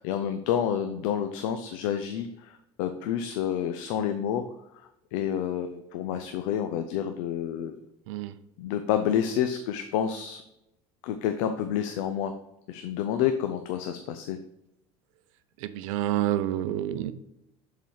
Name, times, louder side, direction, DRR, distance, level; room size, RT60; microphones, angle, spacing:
voice 1, 0.0-7.8 8.6-10.4 11.0-12.3 12.7-14.4, left 9 dB, 75° left, 8 dB, 0.6 m, -29 dB
voice 2, 15.6-17.1, right 13 dB, 80° right, 13 dB, 0.6 m, -28 dB
6.8 x 4.0 x 4.7 m, 0.83 s
hypercardioid pair, 85°, 17 cm